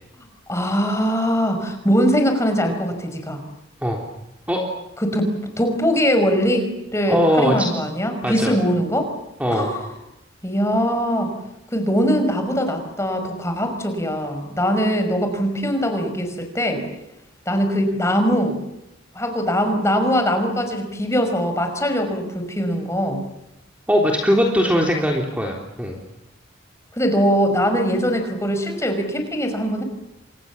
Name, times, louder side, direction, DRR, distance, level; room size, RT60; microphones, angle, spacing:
voice 1, 0.5-3.4 5.0-9.1 9.5-9.9 10.4-11.3 11.7-16.9 17.5-18.6 19.2-23.2 26.9-29.8, equal, 15° left, 6 dB, 5.3 m, -21 dB
voice 2, 7.1-7.7 8.2-8.5 9.4-9.7 23.9-26.0, equal, 5° right, 0 dB, 3.6 m, -20 dB
30.0 x 26.5 x 7.3 m, 0.87 s
head